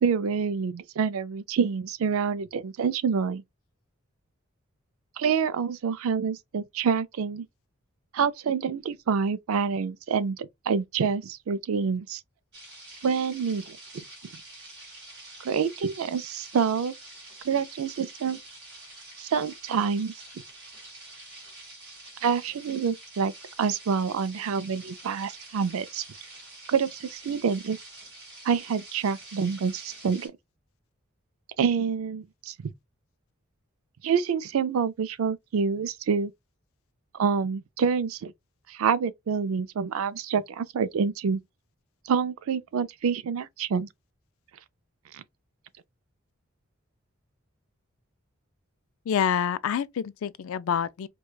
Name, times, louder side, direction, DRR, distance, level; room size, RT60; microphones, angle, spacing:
voice 1, 0.0-3.4 5.2-7.5 8.1-12.2 13.0-14.0 15.4-16.9 17.4-18.4 19.2-20.1 22.2-23.3 23.6-26.0 26.7-27.8 28.4-30.3 31.6-32.7 34.0-36.3 37.1-38.3 38.7-41.4 42.1-43.9 45.1-45.2, right 6 dB, 80° right, 0.4 m, -27 dB
sound 1, 12.5-30.3, right 2 dB, 55° right, 2.5 m, -47 dB
voice 2, 49.1-51.1, left 8 dB, 75° left, 0.3 m, -27 dB
4.7 x 2.2 x 2.3 m
head